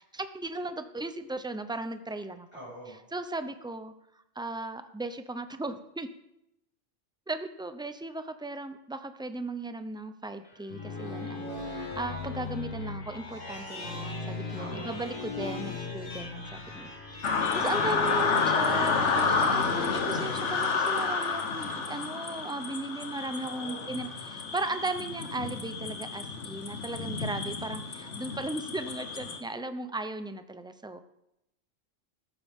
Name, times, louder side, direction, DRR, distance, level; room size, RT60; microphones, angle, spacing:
voice 1, 0.1-2.5 3.1-3.9 4.4-6.1 7.3-16.9 17.6-31.0, right 2 dB, 5° right, 9 dB, 0.4 m, -36 dB
voice 2, 2.5-3.0 14.5-14.9 23.4-24.2, right 1 dB, 20° left, -5 dB, 5.5 m, -45 dB
sound 1, 10.4-21.3, left 3 dB, 45° left, 1.8 m, -39 dB
sound 2, 17.2-29.4, left 4 dB, 80° left, 1.4 m, -30 dB
14.5 x 12.0 x 3.6 m, 0.83 s
omnidirectional pair, 1.2 m